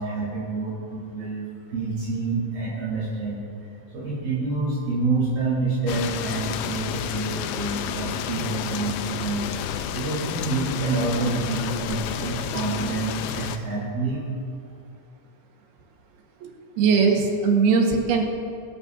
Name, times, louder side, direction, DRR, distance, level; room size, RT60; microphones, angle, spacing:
voice 1, 0.0-3.4 3.9-9.5 9.9-14.2, right 3 dB, 60° right, -9 dB, 5.2 m, -27 dB
sound 1, 5.9-13.6, left 9 dB, 90° left, 1.9 m, -31 dB
voice 2, 16.8-18.2, right 5 dB, 75° right, 1 dB, 3.2 m, -20 dB
25.0 x 12.0 x 2.7 m, 2.3 s
omnidirectional pair, 4.7 m